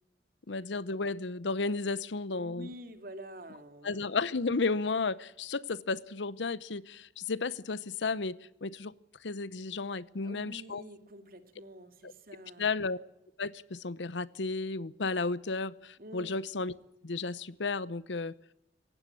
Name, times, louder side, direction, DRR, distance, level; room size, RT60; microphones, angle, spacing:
voice 1, 0.5-2.7 3.8-8.9 9.2-10.8 12.0-12.1 12.6-13.0 13.4-16.7 17.0-18.3, left 3 dB, 85° left, 19 dB, 0.8 m, -33 dB
voice 2, 2.3-4.0 10.2-12.7 16.0-16.3, right 1 dB, 55° right, 8 dB, 2.4 m, -47 dB
18.0 x 15.5 x 9.8 m, 0.83 s
head